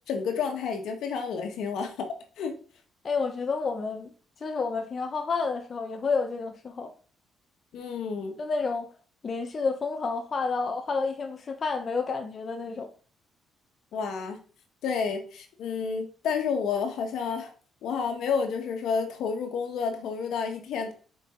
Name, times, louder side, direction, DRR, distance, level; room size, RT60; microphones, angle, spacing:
voice 1, 0.1-2.1 2.4-2.5 7.7-8.3 13.9-14.4 14.8-17.5 17.8-20.9, left 6 dB, 80° left, 1.6 m, -30 dB
voice 2, 3.0-4.1 4.4-6.9 8.4-8.9 9.2-12.9, left 4 dB, 40° left, 1.1 m, -30 dB
7.5 x 5.5 x 3.9 m
cardioid pair, 90°, 0 cm